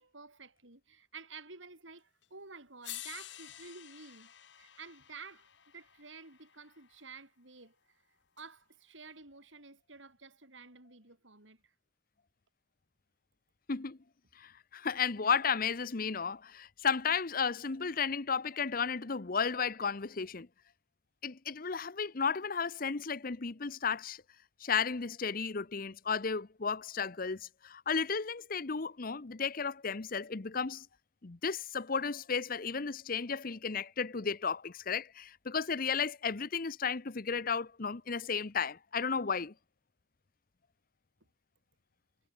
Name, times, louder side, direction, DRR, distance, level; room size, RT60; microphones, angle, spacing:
voice 1, 0.0-4.3 4.6-5.5 5.7-7.7 8.4-11.7, right 4 dB, 80° right, 6.2 m, -51 dB
sound 1, 2.2-2.3 2.8-7.0 8.4-8.5, left 13 dB, 65° left, 2.3 m, -50 dB
voice 2, 14.4-20.5 21.2-24.2 24.6-30.8 31.2-39.5, left 6 dB, 45° left, 0.8 m, -34 dB
head